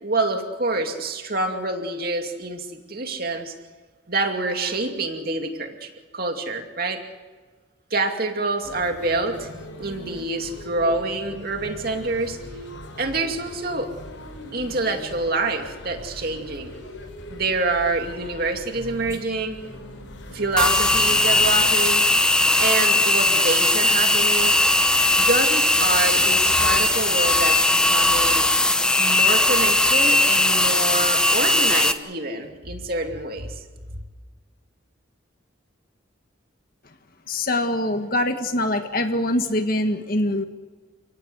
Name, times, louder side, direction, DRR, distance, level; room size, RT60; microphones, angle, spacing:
voice 1, 0.0-3.5 4.1-7.0 7.9-9.5 9.8-12.4 13.0-13.9 14.5-16.7 17.3-19.6 20.3-22.1 22.6-24.5 25.1-28.5 29.0-33.6 33.9-34.0, right 2 dB, 45° right, 4 dB, 2.5 m, -26 dB
sound 1, 8.6-21.7, left 1 dB, 65° left, 6.4 m, -40 dB
sound 2, 20.6-31.9, left 2 dB, 5° left, 0.9 m, -19 dB
voice 2, 37.3-40.4, left 1 dB, 45° left, 6 dB, 1.6 m, -23 dB
30.0 x 18.0 x 8.1 m, 1.4 s
head